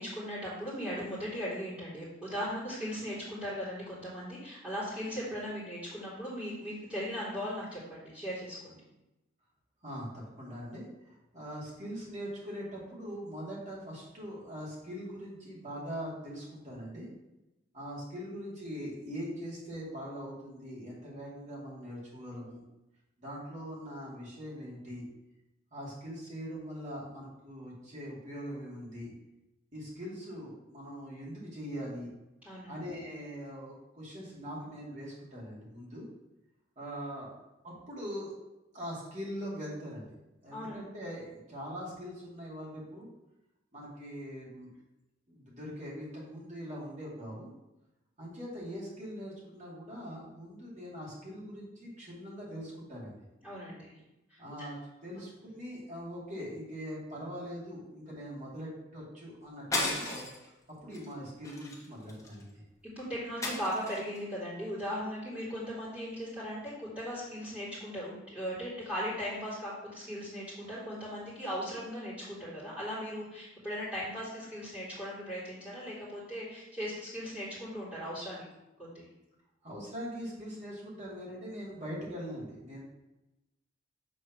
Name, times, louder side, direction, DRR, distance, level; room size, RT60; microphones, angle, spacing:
voice 1, 0.0-8.8 32.4-32.7 40.5-40.8 53.4-53.9 54.3-54.4 62.9-78.4 78.8-79.1, equal, 5° right, -12 dB, 2.8 m, -38 dB
voice 2, 9.8-17.1 17.7-22.6 23.2-25.0 25.7-29.1 29.7-32.1 32.7-36.0 36.8-37.3 37.6-38.3 38.7-40.1 40.4-43.1 43.7-44.7 45.3-47.5 48.2-53.2 54.4-54.8 55.0-60.3 60.8-62.6 79.6-82.8, equal, 40° right, -5 dB, 2.6 m, -42 dB
sound 1, 59.7-60.5 60.9-61.1 61.4-62.4 63.4-64.2, left 2 dB, 15° left, 1.4 m, -34 dB
6.5 x 4.1 x 6.0 m, 0.96 s
head